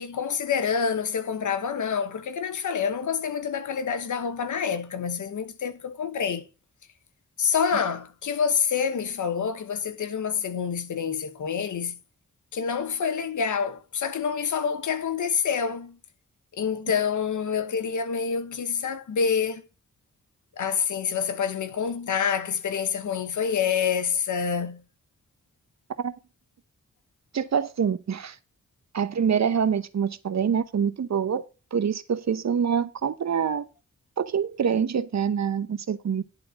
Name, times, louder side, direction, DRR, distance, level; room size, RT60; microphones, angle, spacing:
voice 1, 0.0-6.4 7.4-12.0 12.5-16.0 16.6-19.6 20.6-24.8, left 6 dB, 85° left, 1.1 m, -27 dB
voice 2, 27.3-28.4 28.9-31.4 31.7-33.6 34.2-36.2, right 7 dB, 65° right, 0.9 m, -25 dB
11.0 x 3.8 x 6.4 m
cardioid pair, 55°, 29 cm